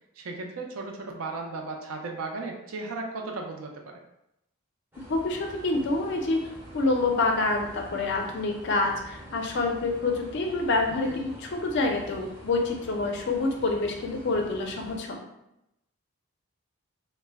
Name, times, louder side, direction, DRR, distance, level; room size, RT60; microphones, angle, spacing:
voice 1, 0.2-4.0 11.0-11.2, right 3 dB, 75° right, 1 dB, 0.4 m, -36 dB
sound 1, 4.9-15.0, equal, 10° right, 0.5 m, -46 dB
voice 2, 5.1-6.4 6.7-15.2, left 3 dB, 50° left, 2 dB, 0.4 m, -27 dB
2.1 x 2.0 x 3.3 m, 0.85 s
head